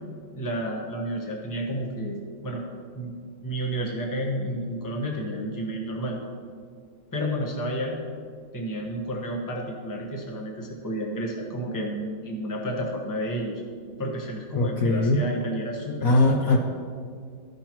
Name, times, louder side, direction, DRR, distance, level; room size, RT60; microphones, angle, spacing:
voice 1, 0.4-2.6 2.9-3.2 3.4-6.2 7.1-8.0 8.5-13.6 14.0-16.1, equal, 15° left, -1 dB, 0.8 m, -31 dB
voice 2, 14.6-15.2 16.0-16.6, left 2 dB, 65° left, 0 dB, 0.9 m, -20 dB
15.0 x 5.7 x 3.0 m, 2.2 s
omnidirectional pair, 2.1 m